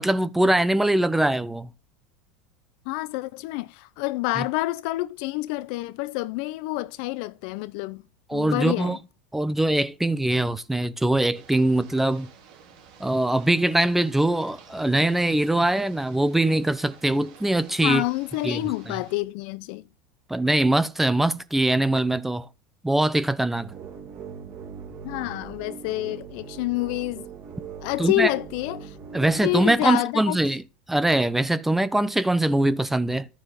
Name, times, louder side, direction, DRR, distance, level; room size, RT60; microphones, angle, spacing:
voice 1, 0.0-1.7 4.4-4.5 8.3-9.0 9.3-12.3 13.0-18.0 18.4-18.6 20.3-22.5 22.8-23.7 28.0-28.3 29.1-30.6 30.9-33.3, right 1 dB, 5° right, 0.8 m, -22 dB
voice 2, 2.9-8.0 8.3-9.0 17.8-19.9 25.0-27.2 27.8-30.4, left 20 dB, 65° left, 0.7 m, -28 dB
Ocean / Boat Water vehicle, 11.3-19.2, right 7 dB, 75° right, 3.9 m, -51 dB
sound 1, 23.6-29.9, right 6 dB, 45° right, 2.8 m, -40 dB
12.0 x 7.2 x 6.7 m
supercardioid pair, 125°, 5 cm